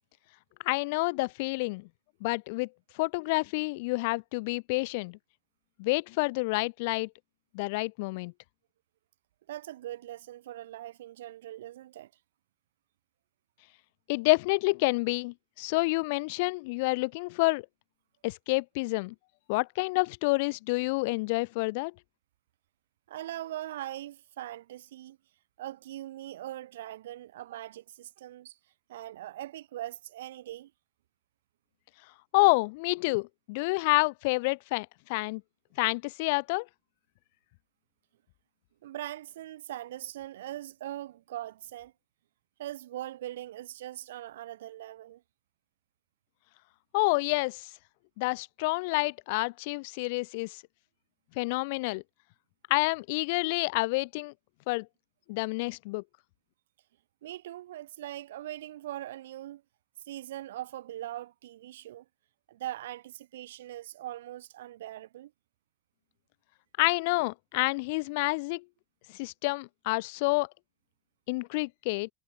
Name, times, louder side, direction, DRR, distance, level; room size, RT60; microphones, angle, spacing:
voice 1, 0.6-1.9 2.2-2.7 2.9-5.2 5.8-7.1 7.5-8.3 14.1-17.6 18.2-19.1 19.5-21.9 32.3-35.4 35.8-36.7 46.9-47.7 48.2-50.6 51.4-52.0 52.7-54.3 54.7-54.9 55.3-56.0 66.8-68.6 69.1-70.5 71.3-72.1, left 26 dB, 45° left, 1.0 m, -28 dB
voice 2, 9.5-12.1 23.1-25.2 25.6-28.6 28.9-30.7 38.8-41.9 42.6-45.2 57.2-59.6 60.0-62.0 62.5-65.3, right 13 dB, 80° right, 3.0 m, -41 dB
supercardioid pair, 180°, 0 cm